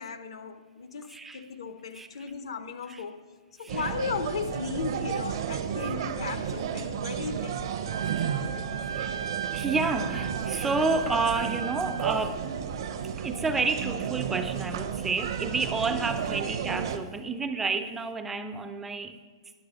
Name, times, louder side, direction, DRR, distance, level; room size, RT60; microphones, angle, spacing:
voice 1, 0.0-3.2 3.6-8.8, left 5 dB, 75° left, 0.7 m, -36 dB
voice 2, 1.1-1.4 1.9-2.1 2.9-3.0 3.6-3.8 5.8-5.9 8.1-8.3 9.0-9.2 9.5-12.6 13.2-19.2, right 3 dB, 10° right, 0.3 m, -30 dB
sound 1, 3.7-17.0, right 8 dB, 55° right, 0.7 m, -32 dB
Trumpet, 7.8-12.1, right 8 dB, 90° right, 0.7 m, -37 dB
10.0 x 6.4 x 5.2 m
hypercardioid pair, 155°, 3 cm